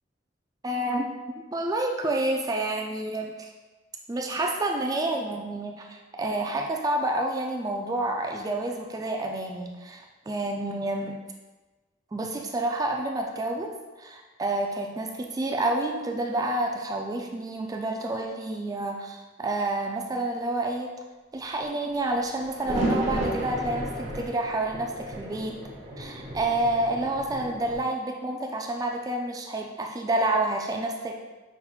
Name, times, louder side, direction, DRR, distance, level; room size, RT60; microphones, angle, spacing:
voice 1, 0.6-1.1 1.5-3.5 4.1-11.2 12.1-20.9 21.3-25.6 26.0-31.2, right 2 dB, 20° right, 2 dB, 0.3 m, -29 dB
sound 1, 22.1-27.8, right 1 dB, 35° right, 0.8 m, -33 dB
5.8 x 3.6 x 2.3 m, 1.2 s
head